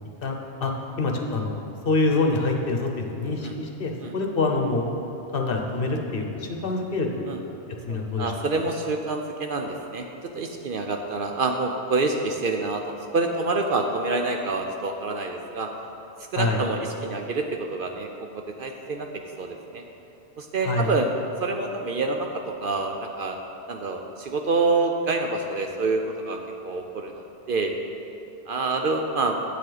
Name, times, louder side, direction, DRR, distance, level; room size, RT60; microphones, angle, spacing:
voice 1, 0.2-1.6 1.9-4.9 5.3-7.3 7.8-8.3 16.4-16.6 20.6-20.9, left 3 dB, 55° left, 2 dB, 1.0 m, -26 dB
voice 2, 7.9-10.1 10.3-15.7 16.3-18.1 18.3-19.1 19.4-19.8 20.4-23.4 23.7-27.7 28.5-29.4, right 3 dB, 60° right, 3 dB, 0.7 m, -27 dB
9.3 x 8.4 x 3.9 m, 2.8 s
omnidirectional pair, 1.2 m